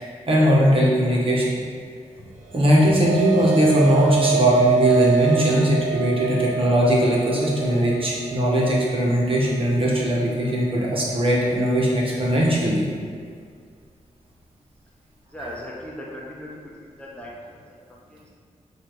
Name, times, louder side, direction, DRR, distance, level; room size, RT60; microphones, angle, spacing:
voice 1, 0.0-1.4 2.5-12.9, equal, 45° right, -5 dB, 1.4 m, -19 dB
sound 1, 2.3-10.9, right 8 dB, 70° right, 1.1 m, -27 dB
voice 2, 15.3-18.3, left 1 dB, 10° left, -5 dB, 1.0 m, -39 dB
7.3 x 2.8 x 4.7 m, 2.1 s
cardioid pair, 85°, 13 cm